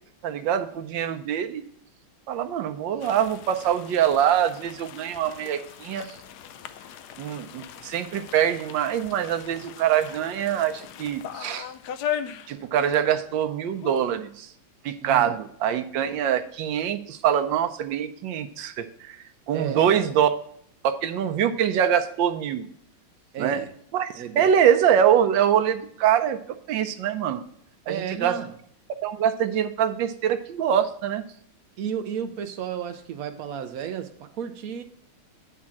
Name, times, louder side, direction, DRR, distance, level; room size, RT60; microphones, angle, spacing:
voice 1, 0.2-1.6 2.3-6.2 7.2-11.7 12.5-14.5 14.8-19.2 19.5-20.3 20.8-22.7 23.4-23.6 23.9-26.4 26.7-27.4 27.9-28.4 29.0-31.2, right 9 dB, 70° right, 1.3 m, -24 dB
sound 1, 3.0-13.1 13.4-13.5 13.8-14.2, left 10 dB, 80° left, 0.9 m, -38 dB
voice 2, 15.0-15.3 19.5-20.1 23.3-23.7 24.1-24.4 27.9-28.5 31.8-34.8, right 8 dB, 90° right, 0.7 m, -33 dB
9.6 x 3.7 x 7.1 m
omnidirectional pair, 2.3 m